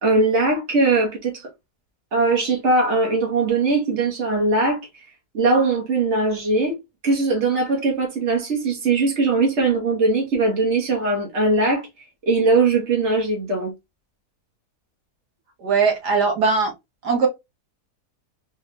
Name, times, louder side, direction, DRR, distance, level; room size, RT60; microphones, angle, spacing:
voice 1, 0.0-1.3 2.1-4.8 5.3-6.8 7.0-11.8 12.3-13.7, right 3 dB, 45° right, 1.8 m, -20 dB
voice 2, 15.6-16.7 17.0-17.3, right 4 dB, 90° right, 1.9 m, -19 dB
4.2 x 2.7 x 3.3 m
omnidirectional pair, 1.7 m